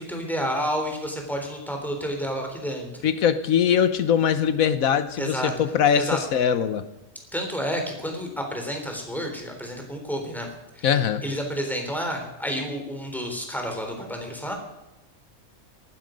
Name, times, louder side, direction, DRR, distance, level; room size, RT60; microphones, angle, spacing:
voice 1, 0.0-2.9 5.2-5.5 5.9-6.2 7.3-10.5 10.7-10.9 11.2-14.5, equal, ahead, 3 dB, 3.6 m, -30 dB
voice 2, 3.0-6.8 10.8-11.2, left 8 dB, 80° left, 12 dB, 1.3 m, -22 dB
18.5 x 14.0 x 5.2 m, 0.99 s
omnidirectional pair, 1.4 m